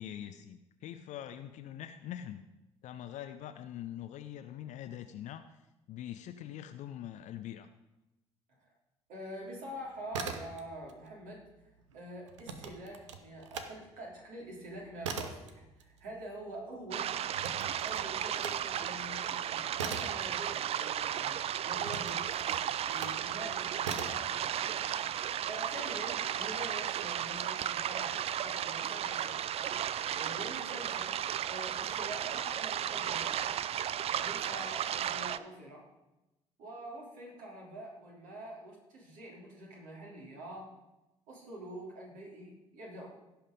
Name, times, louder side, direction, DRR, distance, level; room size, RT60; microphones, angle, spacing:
voice 1, 0.0-2.4 2.8-5.6 5.9-7.7, left 11 dB, 50° left, 8 dB, 0.6 m, -43 dB
voice 2, 9.1-11.4 11.9-15.5 15.8-17.1 17.8-22.2 22.9-29.4 30.1-31.2 31.5-33.6 34.2-35.8 36.6-40.7 41.3-43.1, right 1 dB, 60° right, -2 dB, 3.5 m, -46 dB
sound 1, 9.9-10.9 11.2-13.7 14.1-21.1 21.8-23.3 23.8-24.3, right 6 dB, 75° right, 0.8 m, -42 dB
sound 2, 16.9-35.4, right 10 dB, 40° right, 0.5 m, -34 dB
16.0 x 5.8 x 5.2 m, 0.96 s
figure-of-eight pair, 50°, 15 cm